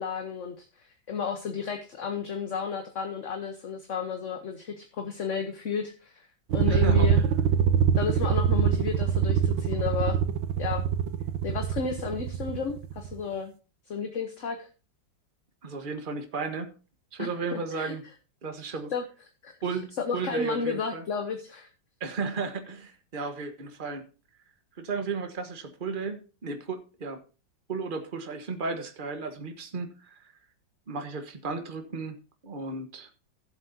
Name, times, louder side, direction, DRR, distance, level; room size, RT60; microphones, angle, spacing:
voice 1, 0.0-6.3 6.5-7.2 8.0-10.2 10.6-10.8 11.4-13.5 13.9-14.7 17.2-17.9 18.9-19.0 19.4-19.5 20.0-21.7, left 6 dB, 45° left, 5 dB, 1.2 m, -32 dB
sound 1, 6.5-13.2, right 8 dB, 80° right, 1.5 m, -24 dB
voice 2, 6.6-7.1 15.6-16.7 17.1-18.0 18.4-18.9 19.6-21.0 22.0-24.0 24.8-27.2 27.7-30.3 30.9-32.2 32.4-33.1, right 4 dB, 30° right, 7 dB, 1.3 m, -34 dB
16.0 x 7.5 x 2.8 m, 0.33 s
omnidirectional pair, 2.1 m